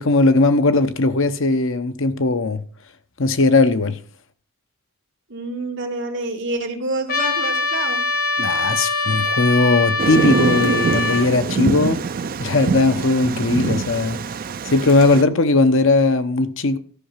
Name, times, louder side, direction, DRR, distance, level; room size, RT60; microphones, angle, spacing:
voice 1, 0.0-2.6 3.2-4.0 8.4-12.0 12.4-14.2 14.7-16.8, left 3 dB, 65° left, 0.9 m, -18 dB
voice 2, 5.3-8.0, right 2 dB, 60° right, 2.2 m, -27 dB
Trumpet, 7.1-11.3, left 2 dB, 45° left, 1.3 m, -22 dB
Thunder, 10.0-15.2, right 4 dB, 45° right, 0.4 m, -24 dB
13.5 x 5.8 x 5.7 m
head